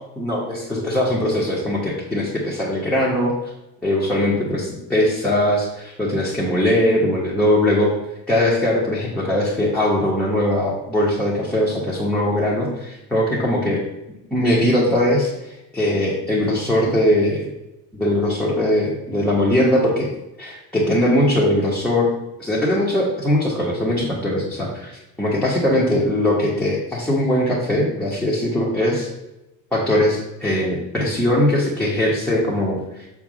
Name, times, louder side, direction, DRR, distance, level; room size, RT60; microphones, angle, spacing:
voice 1, 0.2-3.3 3.8-7.9 8.3-13.8 14.3-17.5 17.9-20.1 20.4-22.1 22.4-29.1 29.7-33.1, left 1 dB, 5° left, -7 dB, 1.3 m, -20 dB
6.6 x 3.6 x 6.2 m, 0.93 s
cardioid pair, 145°, 37 cm